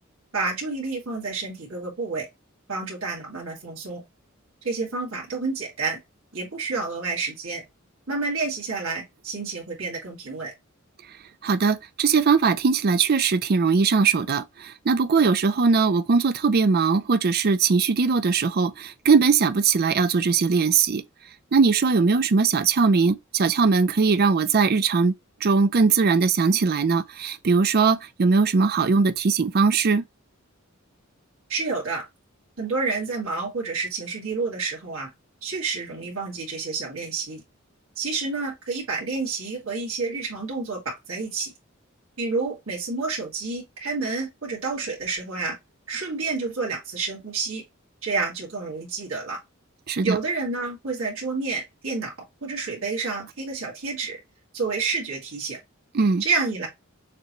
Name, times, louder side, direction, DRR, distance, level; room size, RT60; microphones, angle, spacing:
voice 1, 0.3-2.3 2.7-4.0 4.6-6.0 6.3-7.6 8.1-10.5 31.5-32.1 32.6-35.1 35.4-37.4 38.0-41.5 42.2-45.6 45.9-47.6 48.0-49.4 50.0-52.1 52.4-54.2 54.5-55.6 56.2-56.7, right 4 dB, 80° right, 2.3 m, -29 dB
voice 2, 11.4-21.0 21.5-25.1 25.4-30.0 49.9-50.2 55.9-56.2, right 5 dB, 50° right, 0.5 m, -20 dB
6.6 x 2.2 x 3.0 m
head